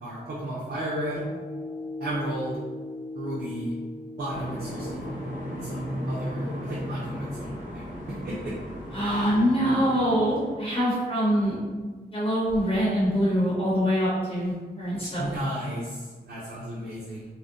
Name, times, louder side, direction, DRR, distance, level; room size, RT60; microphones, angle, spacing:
voice 1, 0.0-1.3 2.0-2.6 3.1-3.7 4.2-5.1 5.5-8.5 15.2-17.3, right 1 dB, 80° right, -7 dB, 0.6 m, -34 dB
sound 1, 1.2-6.7, left 1 dB, 65° left, 0.7 m, -39 dB
sound 2, 4.3-10.6, equal, 50° right, 0.9 m, -35 dB
voice 2, 8.9-11.6 12.1-15.3, equal, 35° left, -8 dB, 0.9 m, -24 dB
2.7 x 2.1 x 3.6 m, 1.4 s
wide cardioid pair, 105°, 17 cm